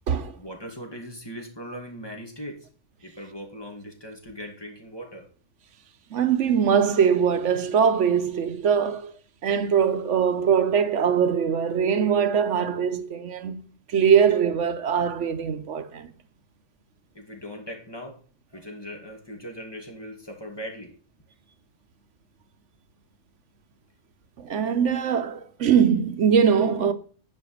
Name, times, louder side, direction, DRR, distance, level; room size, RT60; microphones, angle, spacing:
voice 1, 0.4-2.7 3.0-5.3 17.1-18.2 18.5-20.9, equal, 20° left, 2.3 m, -39 dB
voice 2, 6.1-9.1 9.4-16.1 24.4-26.9, right 7 dB, 70° right, 1.1 m, -22 dB
11.0 x 5.1 x 6.4 m
omnidirectional pair, 1.3 m